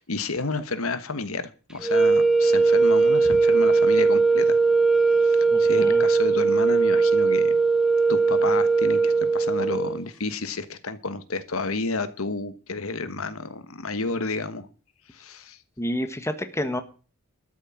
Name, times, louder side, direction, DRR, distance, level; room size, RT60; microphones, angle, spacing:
voice 1, 0.0-4.6 5.1-7.6 8.1-14.7 15.1-15.6, left 3 dB, 75° left, 12 dB, 1.4 m, -31 dB
sound 1, 1.8-10.0, right 4 dB, 5° right, 1.5 m, -19 dB
voice 2, 5.5-6.0 15.8-16.8, left 1 dB, 15° left, 9 dB, 1.3 m, -29 dB
13.0 x 6.5 x 8.8 m, 0.36 s
head